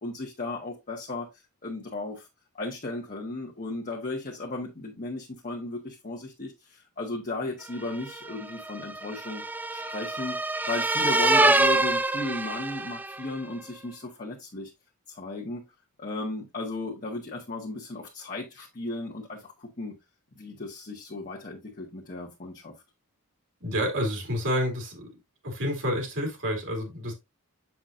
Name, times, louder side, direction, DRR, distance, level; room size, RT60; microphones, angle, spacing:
voice 1, 0.0-1.3 1.6-2.3 2.5-9.4 9.7-10.4 10.7-14.7 15.1-15.6 16.0-19.9 20.4-22.7, left 2 dB, 40° left, 1.3 m, -35 dB
sound 1, 7.9-13.3, right 2 dB, 10° right, 0.3 m, -25 dB
voice 2, 23.6-25.1 25.4-27.1, equal, 60° right, 2.6 m, -29 dB
7.2 x 5.9 x 2.6 m
head